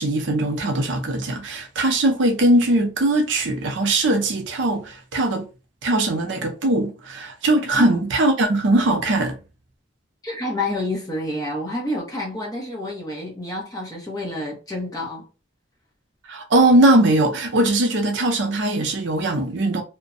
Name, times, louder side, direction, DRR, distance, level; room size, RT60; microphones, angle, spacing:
voice 1, 0.0-5.5 5.8-9.4 16.3-19.8, right 1 dB, 65° right, 0.5 m, -20 dB
voice 2, 10.2-15.3, left 1 dB, 20° left, 0.8 m, -28 dB
2.5 x 2.1 x 2.5 m
head